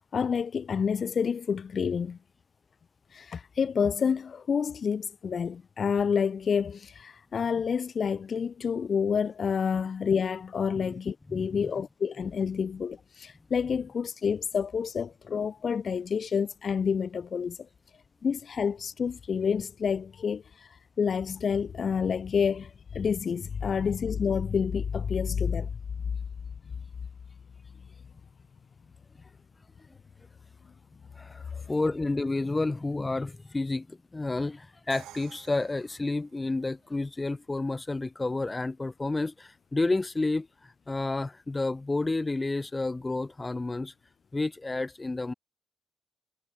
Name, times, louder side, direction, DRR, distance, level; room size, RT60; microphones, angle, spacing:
voice 1, 0.1-2.2 3.1-17.6 18.2-25.7, left 6 dB, 45° left, 1.6 m, -28 dB
voice 2, 11.3-11.7 31.2-43.9 44.3-45.3, left 2 dB, 20° left, 4.3 m, -30 dB
Crash cymbal, 34.9-36.8, right 15 dB, 90° right, 4.3 m, -51 dB
cardioid pair, 90°, 0 cm